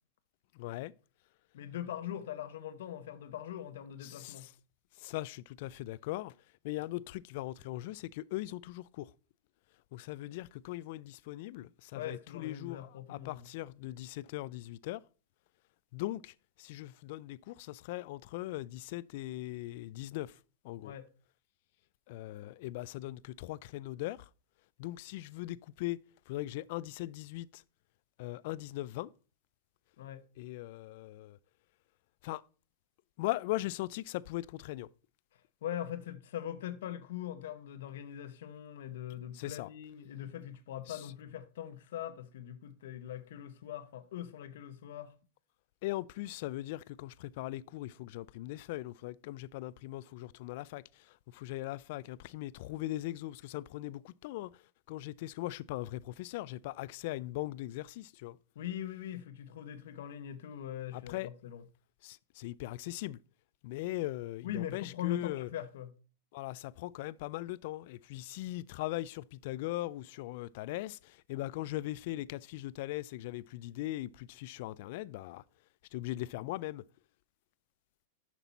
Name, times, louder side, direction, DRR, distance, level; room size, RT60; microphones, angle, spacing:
voice 1, 0.6-0.9 4.0-4.5 5.0-6.3 6.6-9.1 9.9-15.0 15.9-16.3 16.6-20.3 20.6-20.9 22.1-24.2 24.8-26.0 26.3-27.6 28.2-29.1 30.4-31.4 32.2-32.4 33.2-34.9 39.3-39.7 40.9-41.0 45.8-50.8 51.3-54.5 54.9-58.4 60.9-61.3 62.0-63.2 63.6-65.5 66.3-71.0 71.3-75.4 75.9-76.8, left 17 dB, 60° left, 0.3 m, -39 dB
voice 2, 1.5-4.5 11.9-13.5 20.8-21.1 30.0-30.2 35.6-45.1 58.6-61.6 64.4-65.9, left 11 dB, 75° left, 0.8 m, -41 dB
7.0 x 6.0 x 4.0 m
supercardioid pair, 140°, 0 cm